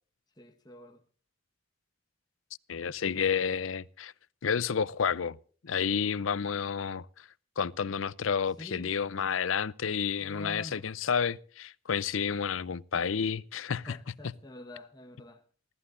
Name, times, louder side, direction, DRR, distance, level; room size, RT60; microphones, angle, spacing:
voice 1, 0.4-1.0 8.6-8.9 10.2-10.9 13.8-15.4, left 1 dB, 20° left, 1.3 m, -46 dB
voice 2, 2.7-4.1 4.4-5.4 5.6-7.3 7.6-14.0 14.2-14.3, left 6 dB, 85° left, 0.6 m, -30 dB
28.0 x 13.5 x 2.6 m
head